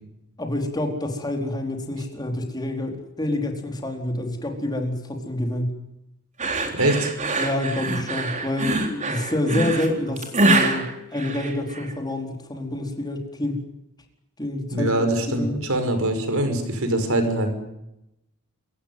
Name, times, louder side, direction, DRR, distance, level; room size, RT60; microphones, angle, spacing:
voice 1, 0.4-5.8 7.4-13.6 14.4-14.9 15.4-15.6, left 1 dB, 20° left, 3 dB, 4.3 m, -27 dB
sound 1, 6.4-11.9, right 2 dB, 35° right, 3.8 m, -24 dB
voice 2, 6.7-7.1 14.7-17.5, right 1 dB, 70° right, 7 dB, 5.7 m, -23 dB
27.5 x 15.5 x 9.5 m, 0.86 s
head